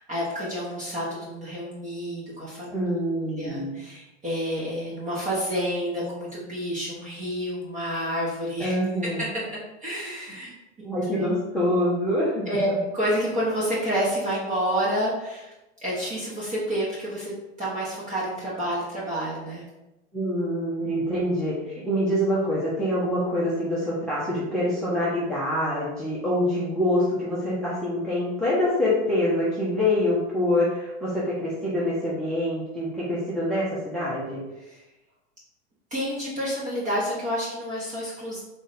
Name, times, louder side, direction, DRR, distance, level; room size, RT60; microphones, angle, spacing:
voice 1, 0.0-2.8 3.2-8.8 9.0-9.3 9.8-11.4 12.5-12.7 12.9-15.5 15.8-19.6 34.6-34.8 35.9-38.4, equal, 20° right, -7 dB, 1.1 m, -29 dB
voice 2, 2.7-3.8 8.6-9.2 10.8-12.8 20.1-34.4, left 1 dB, ahead, -9 dB, 0.8 m, -25 dB
3.3 x 2.5 x 4.0 m, 0.98 s
supercardioid pair, 120°, 34 cm